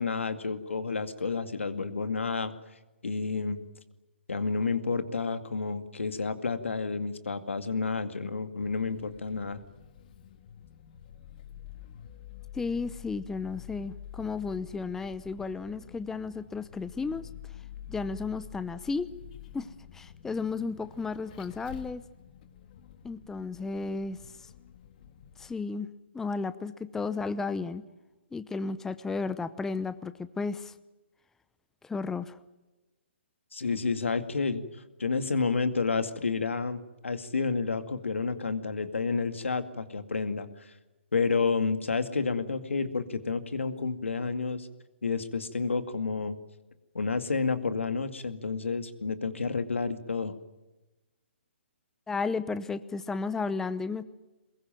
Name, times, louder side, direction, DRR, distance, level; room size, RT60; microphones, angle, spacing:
voice 1, 0.0-2.5 3.0-3.7 4.3-9.6 33.5-40.7 41.1-44.7 45.0-46.4 46.9-50.3, left 4 dB, 85° left, 10 dB, 2.3 m, -30 dB
Vehicle, 8.6-25.5, left 11 dB, 45° left, 2.0 m, -48 dB
voice 2, 12.5-17.2 17.9-19.1 19.5-19.7 19.9-22.0 23.0-24.2 25.4-25.9 26.1-27.8 28.3-30.7 31.8-32.4 52.1-54.1, left 4 dB, 5° left, 14 dB, 0.8 m, -33 dB
23.0 x 21.5 x 9.2 m, 1.1 s
hypercardioid pair, 145°, 7 cm